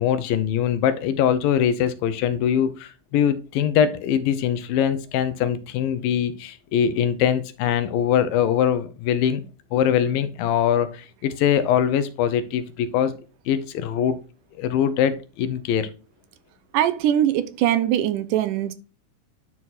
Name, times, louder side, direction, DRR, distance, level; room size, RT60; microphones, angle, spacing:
voice 1, 0.0-9.5 9.7-13.2 13.5-14.2 14.6-15.9, left 9 dB, 85° left, 2.6 m, -22 dB
voice 2, 16.7-18.7, right 11 dB, 80° right, 2.0 m, -21 dB
10.5 x 4.5 x 4.2 m
omnidirectional pair, 4.0 m